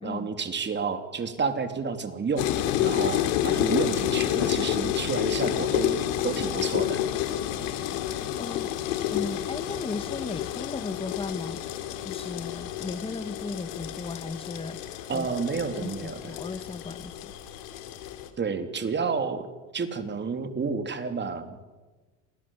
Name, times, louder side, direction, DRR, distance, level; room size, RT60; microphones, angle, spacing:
voice 1, 0.0-2.5 2.8-7.0 15.1-16.4 18.4-19.5 19.7-21.6, right 5 dB, 30° right, 8 dB, 3.4 m, -30 dB
sound 1, 2.4-18.3, left 11 dB, 70° left, 3.3 m, -29 dB
voice 2, 8.4-8.7 9.1-11.6 12.0-15.3 15.8-17.3, left 4 dB, 15° left, 13 dB, 1.4 m, -36 dB
28.0 x 20.0 x 7.5 m, 1.2 s
hypercardioid pair, 85°, 37 cm